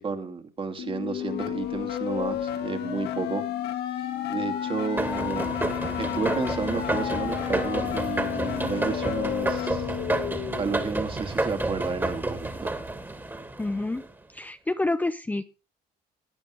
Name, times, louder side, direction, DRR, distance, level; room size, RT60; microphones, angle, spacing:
voice 1, 0.0-3.4 3.8-5.5 6.0-9.8 10.6-12.7, right 4 dB, 30° right, 7 dB, 2.3 m, -32 dB
sound 1, 0.8-10.8, left 10 dB, 75° left, 2.1 m, -31 dB
sound 2, 5.0-14.1, right 2 dB, 10° right, 2.3 m, -30 dB
voice 2, 13.6-14.0 14.3-15.4, left 2 dB, 10° left, 9 dB, 0.7 m, -28 dB
19.5 x 8.9 x 3.1 m, 0.32 s
cardioid pair, 110°, 17 cm